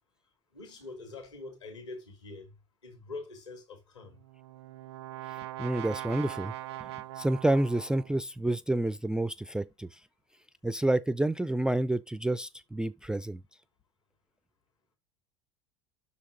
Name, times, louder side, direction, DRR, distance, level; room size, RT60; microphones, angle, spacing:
voice 1, 0.5-2.5 2.8-4.2, left 3 dB, 75° left, 3.4 m, -44 dB
Brass instrument, 4.1-8.3, right 15 dB, 65° right, 0.5 m, -41 dB
voice 2, 5.6-6.5 6.8-6.9 7.2-9.9 10.6-13.4, right 1 dB, 5° right, 0.3 m, -29 dB
6.1 x 5.8 x 5.1 m
figure-of-eight pair, 75°, 15 cm